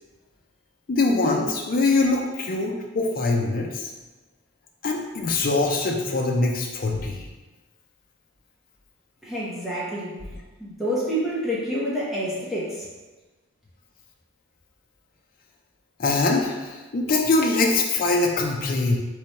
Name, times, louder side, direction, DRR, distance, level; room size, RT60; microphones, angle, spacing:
voice 1, 0.9-3.9 4.8-7.3 16.0-19.0, left 3 dB, 45° left, 0 dB, 0.4 m, -23 dB
voice 2, 9.2-10.2 10.6-12.9, equal, ahead, -9 dB, 0.8 m, -28 dB
3.7 x 3.2 x 4.3 m, 1.2 s
head